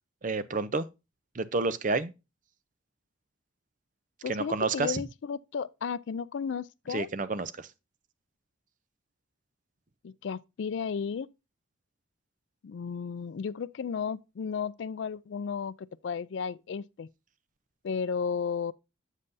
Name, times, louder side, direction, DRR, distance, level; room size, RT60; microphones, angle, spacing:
voice 1, 0.2-0.9 1.3-2.1 4.3-5.0 6.9-7.7, right 3 dB, 40° right, 0.5 m, -29 dB
voice 2, 4.2-7.1 10.0-11.3 12.6-17.1 17.8-18.7, left 6 dB, 65° left, 0.4 m, -34 dB
8.1 x 7.5 x 2.6 m
head